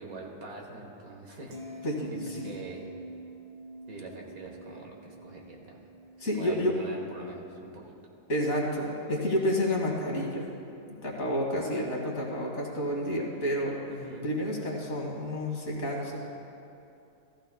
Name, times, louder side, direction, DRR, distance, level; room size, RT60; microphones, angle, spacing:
voice 1, 0.0-1.8 2.1-2.9 3.9-5.8 6.4-7.9 13.9-14.3, right 2 dB, 65° right, -1 dB, 1.8 m, -44 dB
sound 1, 1.5-7.8 8.1-8.4, right 1 dB, 80° right, 1.7 m, -46 dB
voice 2, 1.8-2.5 6.2-6.8 8.3-10.5 10.9-13.8 14.2-16.2, equal, 45° left, -2 dB, 1.9 m, -30 dB
16.0 x 14.5 x 2.2 m, 2.7 s
omnidirectional pair, 1.7 m